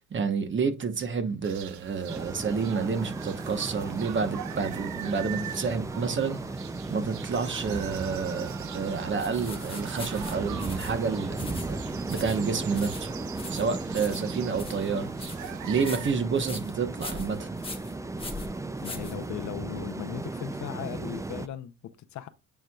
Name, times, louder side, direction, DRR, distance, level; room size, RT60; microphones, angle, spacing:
voice 1, 0.1-6.4 6.9-11.8 12.1-13.2 13.5-15.1 15.6-17.5, right 5 dB, 40° right, 1.1 m, -29 dB
sound 1, 1.4-16.1, right 11 dB, 70° right, 0.6 m, -42 dB
sound 2, 2.1-21.5, right 2 dB, 10° right, 0.4 m, -36 dB
sound 3, 9.2-19.7, left 3 dB, 20° left, 1.4 m, -42 dB
voice 2, 18.8-22.3, left 11 dB, 70° left, 0.8 m, -38 dB
9.1 x 4.6 x 2.4 m
cardioid pair, 90°, 30 cm